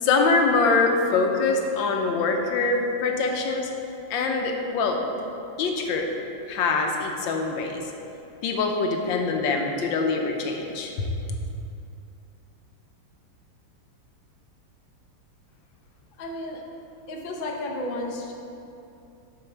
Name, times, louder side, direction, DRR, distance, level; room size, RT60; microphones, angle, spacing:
voice 1, 0.0-3.7 4.1-5.0 5.6-6.1 6.5-7.8 8.4-11.4, left 4 dB, 85° left, 3 dB, 1.5 m, -24 dB
voice 2, 16.2-16.6 17.1-18.3, left 1 dB, 50° left, 0 dB, 0.6 m, -32 dB
7.2 x 6.0 x 4.5 m, 2.8 s
omnidirectional pair, 2.0 m